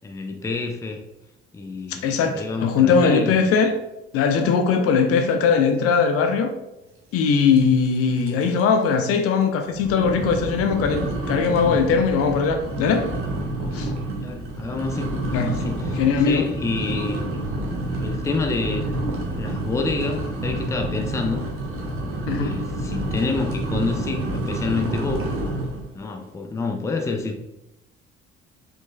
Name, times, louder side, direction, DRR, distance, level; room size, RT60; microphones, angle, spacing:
voice 1, 0.0-1.0 1.5-3.4 14.2-17.3 18.0-19.1 19.4-21.4 22.4-25.3 25.9-27.4, left 4 dB, 10° left, 0.5 m, -28 dB
voice 2, 2.0-3.7 4.1-6.5 7.1-13.1 13.7-13.9 15.3-15.6 16.0-16.5 16.9-17.0 22.3-22.6, left 5 dB, 50° left, 0.6 m, -20 dB
sound 1, 7.6-8.6 9.0-9.1 9.7-25.9, right 1 dB, 45° right, 0.9 m, -28 dB
4.7 x 3.9 x 2.3 m
figure-of-eight pair, 50°, 29 cm